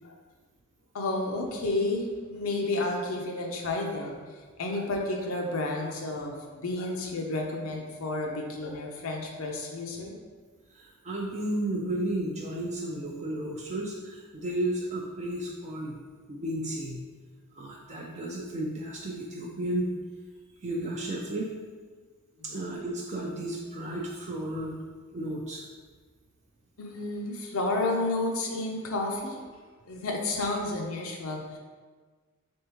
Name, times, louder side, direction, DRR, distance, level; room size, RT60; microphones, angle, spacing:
voice 1, 0.9-4.2 4.6-6.3 6.6-10.1 22.4-22.8 26.8-29.4 29.9-31.6, left 2 dB, 80° left, 0 dB, 0.6 m, -31 dB
voice 2, 10.7-16.0 16.3-17.0 17.5-19.9 20.6-21.5 22.4-24.8 25.1-25.6, right 1 dB, 35° right, -2 dB, 0.4 m, -33 dB
3.5 x 3.5 x 2.9 m, 1.4 s
head